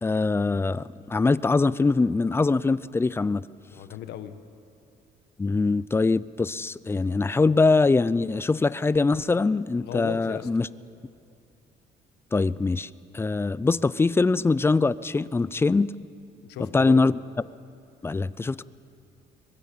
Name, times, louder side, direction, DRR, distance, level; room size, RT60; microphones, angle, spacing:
voice 1, 0.0-3.4 5.4-10.7 12.3-15.9 16.7-17.1 18.0-18.6, left 3 dB, 15° left, 18 dB, 0.5 m, -23 dB
voice 2, 3.7-4.3 9.8-10.5 16.4-17.0, left 11 dB, 75° left, 9 dB, 1.6 m, -36 dB
23.5 x 20.5 x 8.5 m, 2.5 s
cardioid pair, 110°, 17 cm